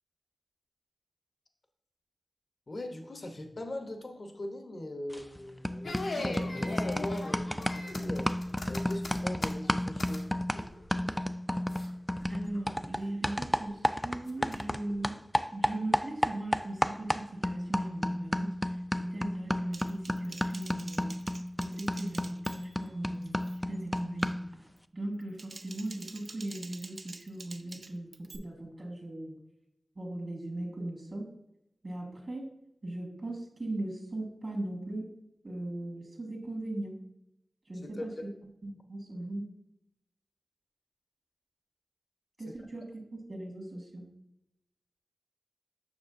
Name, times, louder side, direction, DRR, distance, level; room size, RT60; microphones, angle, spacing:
voice 1, 2.7-10.3 37.8-38.1 42.5-42.6, left 1 dB, 60° left, 5 dB, 0.8 m, -41 dB
sound 1, 5.1-5.4 5.6-14.8 15.0-24.5, equal, 5° left, 0.3 m, -32 dB
sound 2, 5.8-10.3 10.5-11.1 11.7-11.9 12.2-12.6 13.1-13.6 14.3-14.9, left 2 dB, 85° left, 1.1 m, -40 dB
voice 2, 12.3-15.2 15.5-21.1 21.6-24.4 24.9-29.3 29.9-31.3 31.8-32.5 32.8-35.1 35.4-36.9 37.7-38.1 38.6-39.4 42.4-42.8 43.1-44.0, right 1 dB, 50° right, 0 dB, 1.6 m, -39 dB
Typing, 19.7-22.9 23.2-23.6 24.0-24.3 25.1-28.4, right 3 dB, 75° right, 0.4 m, -48 dB
7.1 x 6.1 x 2.5 m, 0.83 s
wide cardioid pair, 60°, 0 cm